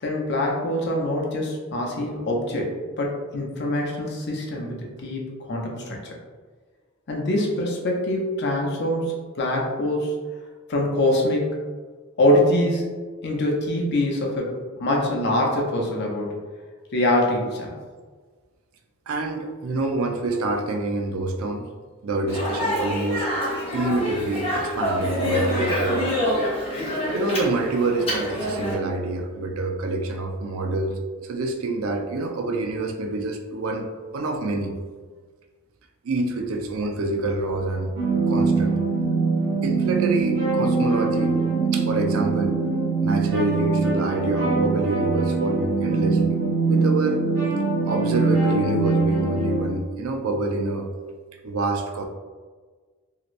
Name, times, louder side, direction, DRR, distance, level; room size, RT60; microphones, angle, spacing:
voice 1, 0.0-2.7 3.0-5.2 5.5-6.1 7.1-10.2 10.7-11.6 12.2-12.9 13.2-16.4 16.9-17.7, left 1 dB, 55° left, -1 dB, 0.6 m, -24 dB
voice 2, 19.1-21.7 22.0-23.3 23.7-26.1 27.1-33.9 34.1-35.1 36.0-37.9 38.3-38.8 39.6-41.4 41.7-42.6 43.0-46.4 46.7-47.2 47.8-51.1 51.4-52.0, right 2 dB, 85° right, 4 dB, 0.4 m, -27 dB
Speech, 22.3-28.7, left 1 dB, 30° left, 0.8 m, -26 dB
sound 1, 38.0-49.7, right 4 dB, 60° right, 1.0 m, -23 dB
3.1 x 2.8 x 2.5 m, 1.4 s
head